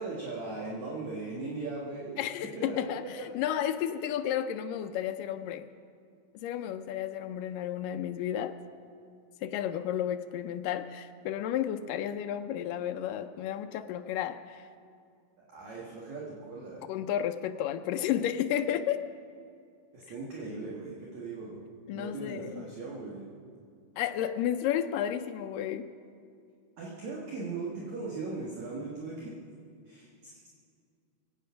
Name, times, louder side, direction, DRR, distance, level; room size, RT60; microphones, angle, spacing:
voice 1, 0.0-2.2 2.6-2.8 3.2-3.3 15.5-16.9 19.9-21.7 21.9-23.3 26.8-29.4 29.9-30.1, right 3 dB, 55° right, -5 dB, 2.7 m, -38 dB
voice 2, 2.2-5.7 6.4-8.6 9.4-14.7 16.9-19.0 21.9-22.6 24.0-25.9, left 10 dB, 85° left, 7 dB, 1.9 m, -32 dB
24.0 x 8.8 x 5.7 m, 2.3 s
omnidirectional pair, 4.5 m